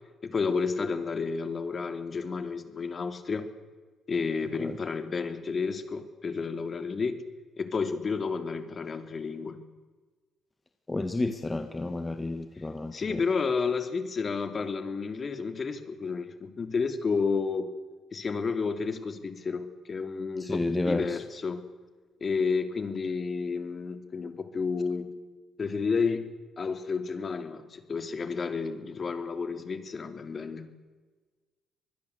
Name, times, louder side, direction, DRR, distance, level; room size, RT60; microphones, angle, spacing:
voice 1, 0.2-3.5 4.1-7.2 7.6-9.6 12.9-17.7 18.1-21.6 22.2-25.1 25.6-26.2 26.6-30.6, left 5 dB, 40° left, 9 dB, 3.0 m, -31 dB
voice 2, 10.9-13.2 20.4-21.2, left 2 dB, 20° left, 8 dB, 1.7 m, -31 dB
25.5 x 20.5 x 8.2 m, 1.3 s
cardioid pair, 90°, 0 cm